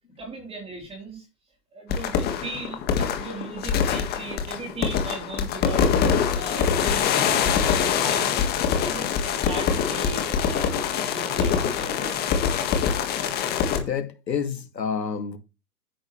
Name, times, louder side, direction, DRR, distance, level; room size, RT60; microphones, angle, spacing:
voice 1, 0.2-1.3 1.7-6.0 6.3-8.3 8.8-12.5, right 3 dB, 10° right, 3.6 m, -37 dB
sound 1, 1.9-13.8, left 7 dB, 20° left, 1.7 m, -24 dB
voice 2, 12.6-13.3 13.8-15.4, left 7 dB, 85° left, 2.4 m, -31 dB
10.0 x 9.5 x 3.2 m
hypercardioid pair, 140°, 48 cm